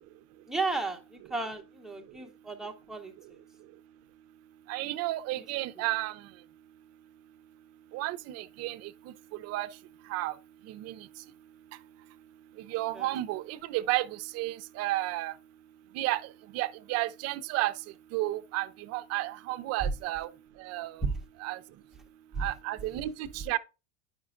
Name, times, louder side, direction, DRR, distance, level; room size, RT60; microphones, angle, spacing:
voice 1, 0.5-3.4 5.4-5.5 12.9-13.2 19.8-19.9 21.0-21.2 22.3-22.5, right 4 dB, ahead, 0.7 m, -34 dB
voice 2, 4.7-6.2 7.9-8.9 9.4-9.7 10.1-10.3 10.7-11.0 12.7-15.3 15.9-16.2 16.5-17.7 18.1-20.3 20.6-21.0 21.4-21.6 22.4-23.6, right 17 dB, 40° right, 0.4 m, -32 dB
9.3 x 5.1 x 2.4 m
supercardioid pair, 125°, 40 cm